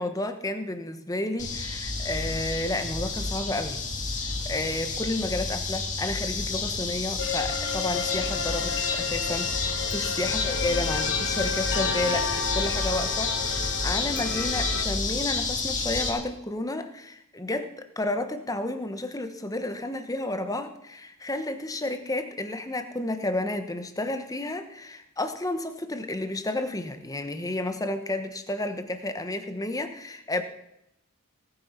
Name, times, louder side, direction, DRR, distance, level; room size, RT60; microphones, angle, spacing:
voice 1, 0.0-3.8 4.2-30.4, left 2 dB, 15° left, 8 dB, 1.1 m, -31 dB
sound 1, 1.4-16.1, left 4 dB, 35° left, 2.2 m, -30 dB
sound 2, 7.2-14.8, left 5 dB, 55° left, 1.5 m, -32 dB
18.0 x 8.9 x 5.8 m, 0.81 s
head